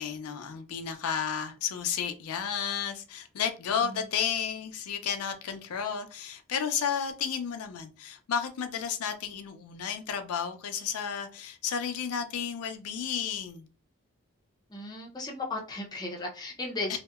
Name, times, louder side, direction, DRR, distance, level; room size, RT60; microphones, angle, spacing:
voice 1, 0.0-13.7, left 7 dB, 90° left, 0.4 m, -32 dB
voice 2, 14.7-17.0, left 2 dB, 20° left, 0.5 m, -35 dB
2.7 x 2.1 x 2.3 m
head